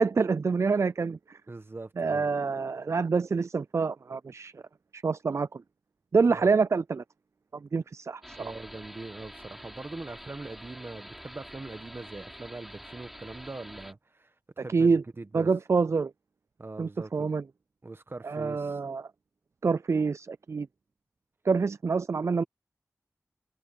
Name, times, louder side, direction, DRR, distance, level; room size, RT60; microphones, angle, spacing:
voice 1, 0.0-1.4 2.0-4.5 4.9-5.6 6.1-7.0 7.6-8.5 14.7-15.0 15.3-16.1 16.8-17.4 18.2-19.0 19.6-20.7 21.5-22.4, right 4 dB, 65° right, 0.4 m, -26 dB
voice 2, 1.5-2.3 6.3-6.5 8.4-15.5 16.6-17.3 17.8-18.8, right 2 dB, 45° right, 1.5 m, -42 dB
sound 1, 8.2-13.9, equal, 5° right, 4.5 m, -46 dB
wide cardioid pair, 65°, 5 cm